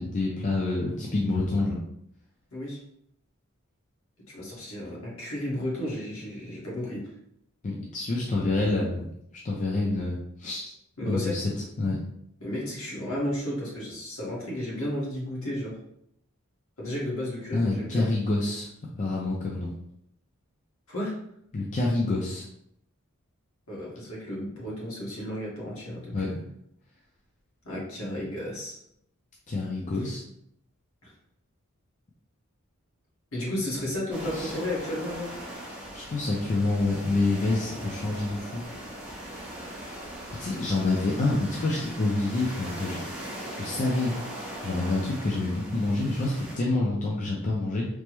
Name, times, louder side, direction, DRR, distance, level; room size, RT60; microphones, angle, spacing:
voice 1, 0.0-1.8 7.6-9.1 9.4-10.7 11.1-11.4 11.8-12.0 17.5-18.7 18.9-19.7 21.5-22.4 26.1-26.4 29.5-30.2 34.3-34.5 35.9-38.6 40.3-43.0 43.5-44.2 44.6-47.9, left 2 dB, 35° left, -3 dB, 0.4 m, -27 dB
voice 2, 4.3-7.1 11.0-11.5 12.4-15.7 16.8-18.1 20.9-21.1 23.7-26.4 27.6-28.8 31.0-31.1 33.3-35.3 40.8-41.0, left 1 dB, 70° left, -5 dB, 1.2 m, -33 dB
sound 1, 34.1-46.5, right 1 dB, 5° right, 0.8 m, -40 dB
3.3 x 2.0 x 3.0 m, 0.73 s
head